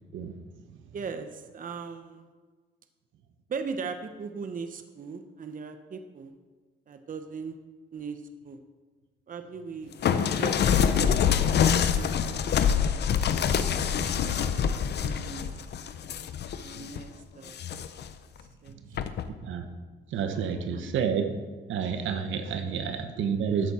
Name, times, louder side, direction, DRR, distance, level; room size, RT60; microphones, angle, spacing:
voice 1, 0.9-2.3 3.5-6.3 6.9-7.6 7.9-8.6 9.3-11.5 11.9-12.5 12.8-13.0 13.3-14.2 15.0-15.8 16.5-17.6 18.6-18.7 19.0-19.2 20.3-21.0 22.6-22.8, right 5 dB, 45° right, 8 dB, 0.9 m, -40 dB
sound 1, 10.0-17.0 17.5-18.1 19.0-19.3, left 8 dB, 60° left, 0.7 m, -25 dB
voice 2, 20.1-21.3 21.7-23.7, right 7 dB, 75° right, 7 dB, 1.1 m, -29 dB
13.5 x 8.3 x 4.3 m, 1.4 s
cardioid pair, 90°, 20 cm